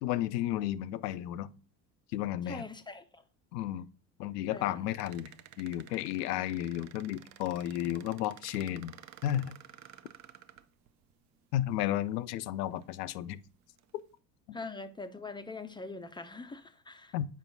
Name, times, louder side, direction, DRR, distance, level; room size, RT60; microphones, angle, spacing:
voice 1, 0.0-1.5 2.1-2.6 3.5-3.9 4.2-8.9 9.2-9.5 11.5-13.4 14.5-14.6 17.1-17.3, left 12 dB, 70° left, 0.6 m, -33 dB
voice 2, 2.5-3.2 4.5-4.9 14.5-17.1, left 3 dB, 10° left, 0.5 m, -43 dB
sound 1, 4.9-11.1 12.1-12.2 12.7-13.2 13.8-14.0, right 11 dB, 35° right, 0.5 m, -54 dB
7.2 x 5.1 x 2.6 m
hypercardioid pair, 70°, 50 cm